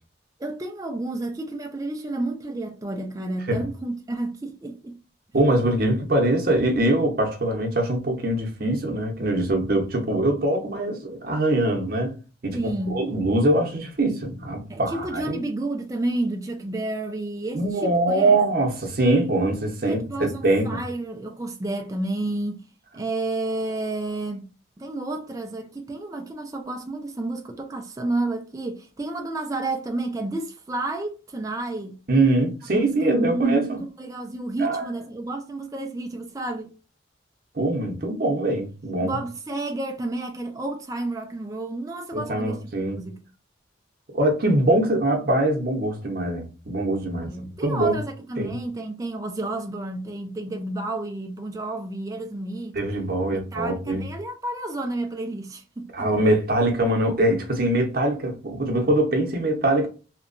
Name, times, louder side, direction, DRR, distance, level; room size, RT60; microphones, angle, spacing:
voice 1, 0.4-5.0 12.5-13.1 14.7-18.4 19.8-22.6 22.9-24.5 24.8-32.0 32.7-36.7 39.0-42.6 43.0-43.2 47.1-52.8 53.3-56.1, right 2 dB, 20° right, 0.4 m, -31 dB
voice 2, 5.3-12.1 12.4-15.4 17.5-20.0 20.4-20.8 32.1-33.8 34.6-34.8 37.5-39.2 42.1-43.0 44.1-47.3 47.6-48.0 48.4-48.6 52.7-54.0 55.9-59.9, right 1 dB, 50° right, 0.7 m, -23 dB
2.9 x 2.2 x 2.5 m
head